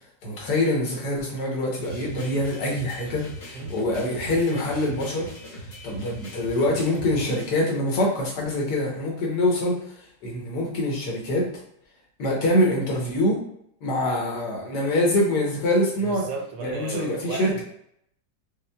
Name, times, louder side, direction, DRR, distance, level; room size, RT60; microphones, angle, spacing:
voice 1, 0.2-5.3 5.8-9.8 10.2-11.5 12.2-13.4 13.8-16.3 16.6-17.6, left 1 dB, 70° left, -2 dB, 1.4 m, -24 dB
sound 1, 1.8-7.5, equal, 45° left, 1.0 m, -39 dB
voice 2, 15.9-17.6, right 4 dB, 80° right, 2 dB, 1.3 m, -34 dB
5.3 x 2.1 x 2.2 m, 0.71 s
omnidirectional pair, 1.9 m